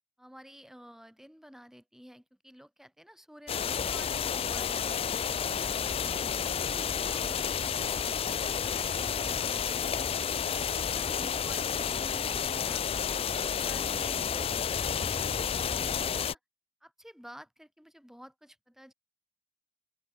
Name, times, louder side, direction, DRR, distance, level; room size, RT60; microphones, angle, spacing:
voice 1, 0.2-7.8 8.2-10.1 10.5-16.4 16.8-18.9, equal, ahead, 5.1 m, -52 dB
sound 1, 3.5-16.3, left 7 dB, 30° left, 0.3 m, -31 dB
open air
head